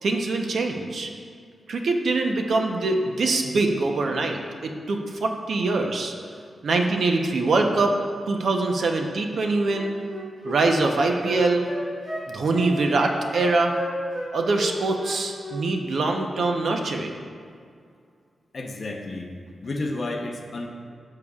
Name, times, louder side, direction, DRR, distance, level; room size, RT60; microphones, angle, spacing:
voice 1, 0.0-1.1 1.7-6.1 6.6-7.9 8.3-10.0 10.4-11.6 12.3-13.7 14.3-17.1, right 3 dB, 60° right, 3 dB, 0.8 m, -23 dB
Wind instrument woodwind instrument, 9.6-14.3 14.6-15.6 15.9-16.1, right 1 dB, 35° right, 2.1 m, -34 dB
voice 2, 18.5-19.3 19.6-20.7, left 2 dB, 40° left, 2 dB, 0.8 m, -31 dB
13.5 x 6.8 x 2.4 m, 2.2 s
wide cardioid pair, 180°, 0 cm